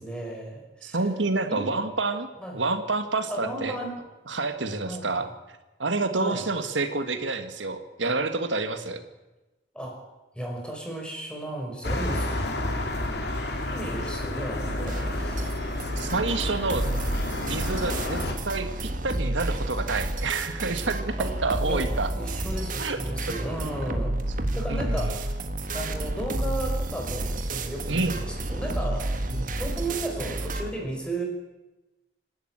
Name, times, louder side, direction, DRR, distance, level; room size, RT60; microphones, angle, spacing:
voice 1, 0.0-1.0 1.5-1.7 2.4-2.6 3.3-3.9 4.8-5.2 6.1-6.4 9.7-10.0 10.3-12.4 13.7-15.6 21.2-21.3 21.7-21.9 22.1-25.4 25.7-31.2, right 1 dB, 5° left, 0 dB, 5.2 m, -34 dB
voice 2, 0.8-3.8 4.3-5.3 5.8-9.0 16.0-16.9 17.4-22.1 22.8-23.0 23.9-24.0 24.7-25.1 27.9-28.1 29.3-29.5, right 3 dB, 90° right, 8 dB, 1.8 m, -28 dB
sound 1, 11.8-18.3, left 2 dB, 60° left, 3.1 m, -30 dB
sound 2, 14.6-30.7, right 1 dB, 45° right, 1.7 m, -30 dB
27.0 x 12.0 x 8.9 m, 1.1 s
head